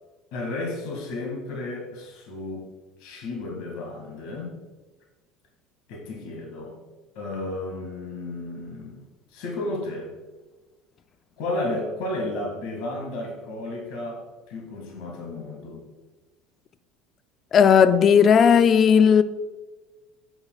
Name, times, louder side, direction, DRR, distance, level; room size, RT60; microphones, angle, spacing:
voice 1, 0.3-2.6 3.0-4.6 5.9-6.8 7.2-9.0 9.3-10.1 11.4-15.8, left 2 dB, 75° left, 2.1 m, -33 dB
voice 2, 17.5-19.2, left 7 dB, 40° left, 0.3 m, -15 dB
9.5 x 5.8 x 2.4 m
cardioid pair, 125°, 0 cm